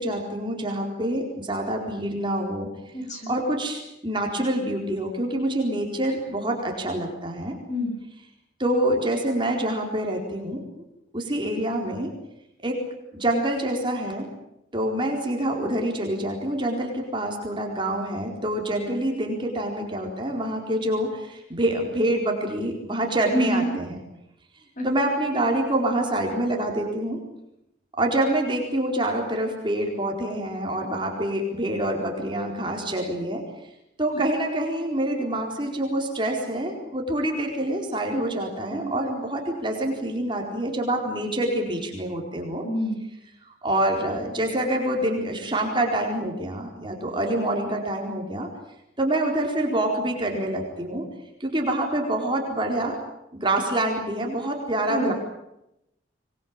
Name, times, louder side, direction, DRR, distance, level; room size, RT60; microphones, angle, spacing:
voice 1, 0.0-2.7 3.3-7.5 8.6-10.6 11.1-12.1 12.6-12.8 13.1-14.3 14.7-24.0 24.8-27.2 28.0-33.4 34.0-42.6 43.6-48.5 49.0-51.0 51.4-53.0 53.3-55.1, right 1 dB, 25° right, 1 dB, 4.3 m, -26 dB
voice 2, 2.9-3.3 7.7-7.9 23.3-23.6 24.8-24.9 38.7-39.2 42.6-43.0 54.9-55.1, equal, 40° left, 3 dB, 7.8 m, -27 dB
25.0 x 21.0 x 8.9 m, 0.84 s
head